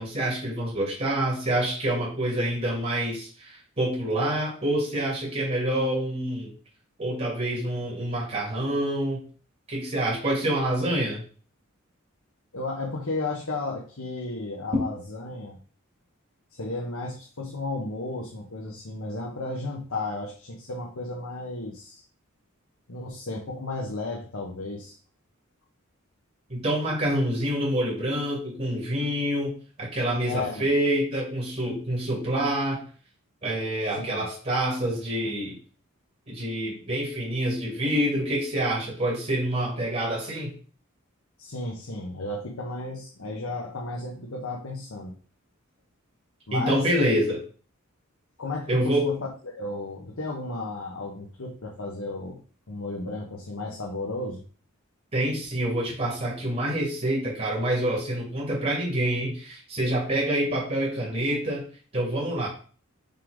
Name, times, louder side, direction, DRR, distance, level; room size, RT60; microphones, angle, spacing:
voice 1, 0.0-6.5 7.0-9.2 9.7-11.2 26.5-32.8 33.4-35.6 36.3-40.5 46.5-47.4 48.7-49.1 55.1-61.6 61.9-62.5, right 1 dB, 35° right, -4 dB, 2.3 m, -27 dB
voice 2, 12.5-15.6 16.6-22.0 22.9-24.9 30.2-30.6 34.0-34.3 41.4-45.1 46.5-47.2 48.4-52.4 52.7-54.4, left 2 dB, 75° left, -1 dB, 1.1 m, -33 dB
5.6 x 3.8 x 4.9 m, 0.40 s
head